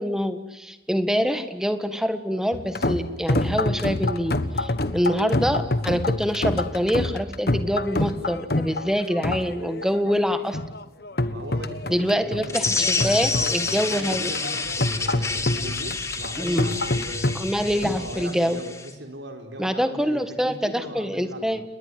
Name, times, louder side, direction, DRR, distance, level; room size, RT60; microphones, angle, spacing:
voice 1, 0.0-10.6 11.9-14.3 16.4-16.8 17.3-18.6 19.6-21.6, equal, 5° right, 10 dB, 1.7 m, -25 dB
sound 1, 2.5-18.2, left 2 dB, 55° left, 1.4 m, -27 dB
voice 2, 11.3-13.5 13.9-17.4 17.7-21.6, right 1 dB, 80° right, 4 dB, 3.8 m, -39 dB
sound 2, 12.5-18.9, left 4 dB, 15° left, 2.1 m, -29 dB
29.5 x 21.0 x 9.3 m, 0.97 s
head